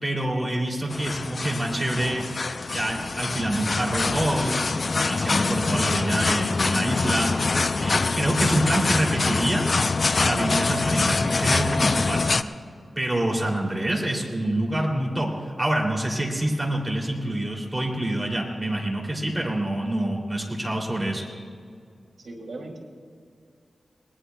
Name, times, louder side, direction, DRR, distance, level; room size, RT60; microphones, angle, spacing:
voice 1, 0.0-2.3 2.7-4.6 5.1-7.3 7.8-9.6 10.2-12.4 13.0-21.2, right 1 dB, 15° right, -1 dB, 2.8 m, -26 dB
sound 1, 0.9-12.4, left 3 dB, 50° left, 0.4 m, -25 dB
voice 2, 22.2-22.8, right 2 dB, 75° right, -1 dB, 2.7 m, -37 dB
21.5 x 19.5 x 2.3 m, 2.3 s
wide cardioid pair, 95°, 0 cm